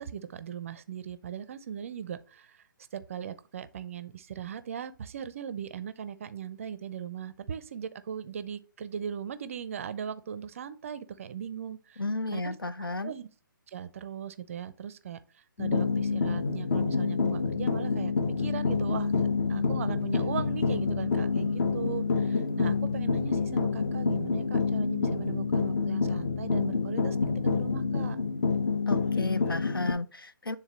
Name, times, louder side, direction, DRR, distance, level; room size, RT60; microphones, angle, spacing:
voice 1, 0.0-2.6 2.9-12.0 12.3-12.6 13.0-13.3 13.7-15.2 15.6-19.1 19.5-28.2, right 8 dB, 40° right, 0.5 m, -39 dB
voice 2, 12.0-13.1 28.9-30.6, left 2 dB, 85° left, 0.6 m, -33 dB
sound 1, 15.6-29.9, left 4 dB, 40° left, 0.9 m, -28 dB
9.1 x 3.6 x 3.1 m
figure-of-eight pair, 140°, 12 cm